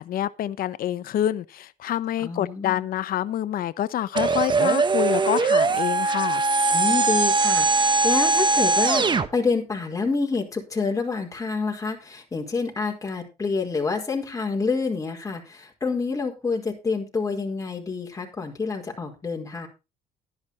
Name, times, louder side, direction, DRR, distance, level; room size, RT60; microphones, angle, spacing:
voice 1, 0.0-6.4, left 11 dB, 60° left, 0.9 m, -27 dB
voice 2, 2.2-2.8 6.7-19.7, left 4 dB, 20° left, 4.6 m, -28 dB
sound 1, 4.1-9.3, right 3 dB, 25° right, 1.3 m, -21 dB
12.5 x 10.5 x 4.2 m
cardioid pair, 110°, 17 cm